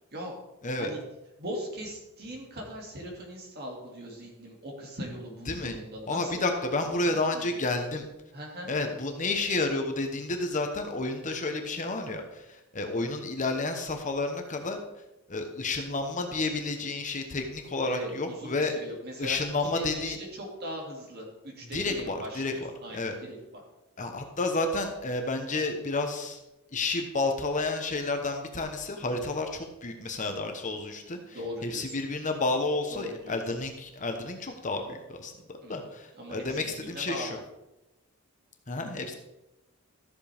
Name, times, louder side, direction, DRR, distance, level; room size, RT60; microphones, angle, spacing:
voice 1, 1.4-6.6 7.0-7.5 8.3-8.7 17.9-23.6 31.3-31.9 32.9-33.4 35.6-35.8 36.2-37.4, equal, 45° right, -1 dB, 2.4 m, -40 dB
voice 2, 6.1-8.0 8.6-14.8 15.3-18.7 19.2-20.2 21.7-23.1 24.0-26.4 26.7-35.3 35.7-37.4 38.7-39.1, left 2 dB, 35° left, 5 dB, 1.0 m, -31 dB
13.5 x 7.5 x 3.5 m, 0.96 s
head